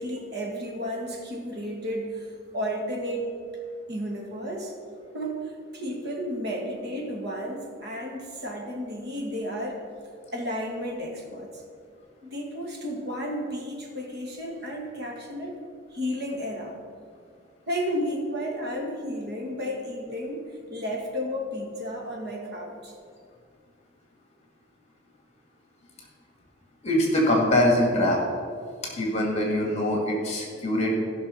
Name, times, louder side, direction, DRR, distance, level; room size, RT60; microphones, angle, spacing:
voice 1, 0.0-3.3 3.9-4.8 5.1-9.8 10.3-11.6 12.2-15.6 15.9-16.8 17.7-22.9, equal, 55° right, 0 dB, 2.0 m, -32 dB
voice 2, 26.8-28.2 29.0-30.9, left 1 dB, 35° left, -1 dB, 2.1 m, -23 dB
14.5 x 6.1 x 5.5 m, 2.2 s
head